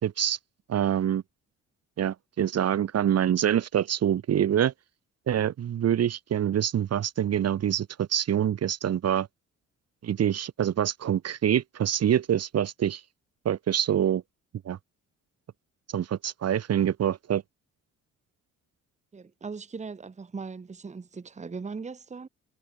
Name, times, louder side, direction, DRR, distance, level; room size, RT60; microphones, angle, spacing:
voice 1, 0.0-0.4 0.7-1.2 2.0-4.7 5.3-9.3 10.0-13.0 13.4-14.2 14.6-14.8 15.9-17.4, right 10 dB, 55° right, 1.3 m, -25 dB
voice 2, 19.1-22.3, right 4 dB, 25° right, 1.2 m, -39 dB
cardioid pair, 90°, 30 cm